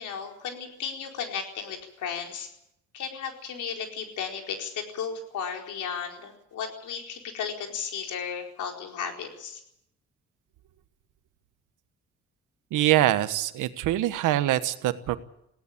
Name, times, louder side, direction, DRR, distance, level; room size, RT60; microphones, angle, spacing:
voice 1, 0.0-2.5 2.9-9.6, left 7 dB, 80° left, 3 dB, 4.5 m, -34 dB
voice 2, 12.7-15.2, right 14 dB, 90° right, 12 dB, 1.3 m, -24 dB
19.5 x 17.0 x 8.6 m, 0.77 s
cardioid pair, 90°, 30 cm